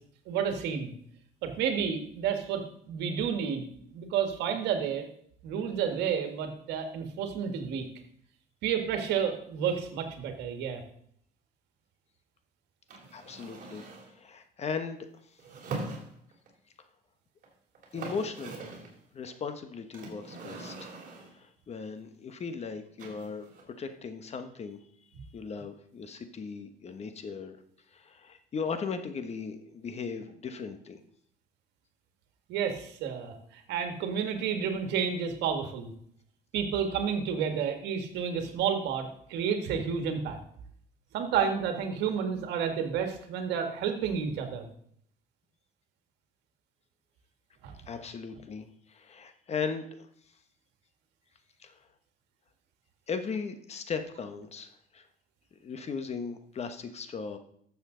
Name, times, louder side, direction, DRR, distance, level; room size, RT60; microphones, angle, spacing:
voice 1, 0.3-0.9 1.4-5.1 5.4-7.9 8.6-10.8 32.5-35.9 36.5-40.4 41.1-44.7 47.6-47.7, right 7 dB, 85° right, 6 dB, 1.7 m, -30 dB
Wooden chair push in pull out, 12.9-14.2 15.4-16.5 17.4-17.5 17.7-19.0 19.9-21.4 23.0-23.6, right 3 dB, 55° right, 3.0 m, -42 dB
voice 2, 13.1-13.8 14.1-15.1 17.9-18.6 19.1-21.0 21.3-24.8 25.3-27.6 27.9-31.0 47.9-50.0 51.6-51.8 53.1-55.1 55.5-57.4, left 5 dB, 40° left, 8 dB, 1.2 m, -37 dB
12.5 x 7.2 x 3.9 m, 0.65 s
cardioid pair, 110°, 17 cm